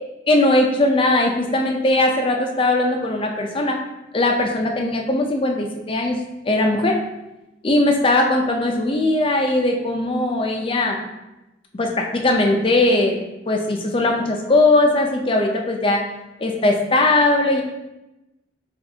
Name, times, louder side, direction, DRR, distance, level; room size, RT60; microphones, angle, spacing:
voice 1, 0.3-3.8 4.1-6.2 6.5-7.0 7.6-11.0 11.7-13.2 13.5-16.0 16.4-17.6, left 2 dB, 30° left, 2 dB, 0.5 m, -19 dB
6.6 x 2.5 x 2.8 m, 0.97 s
head